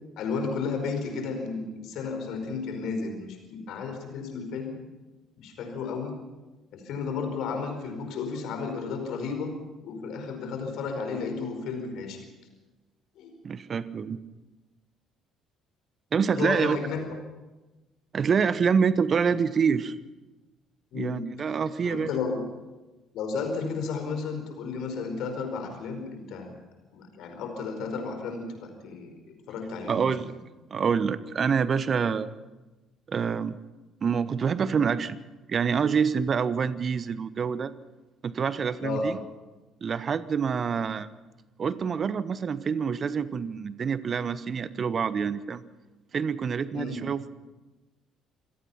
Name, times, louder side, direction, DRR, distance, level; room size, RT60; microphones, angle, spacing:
voice 1, 0.2-4.7 5.4-6.1 6.7-9.5 9.8-12.3 13.1-13.3 16.3-17.2 20.9-21.3 21.8-22.5 23.1-26.5 26.9-29.1 29.5-30.3 38.8-39.1 46.7-47.0, left 4 dB, 60° left, 5 dB, 5.0 m, -33 dB
voice 2, 13.4-14.2 16.1-16.8 18.1-20.0 20.9-22.1 29.9-30.3 30.7-32.3 33.1-33.6 34.0-35.2 35.5-37.7 38.2-39.2 39.8-41.1 41.6-45.6 46.1-47.3, right 6 dB, 45° right, 16 dB, 1.1 m, -26 dB
27.0 x 17.5 x 5.8 m, 1.1 s
figure-of-eight pair, 50°, 0 cm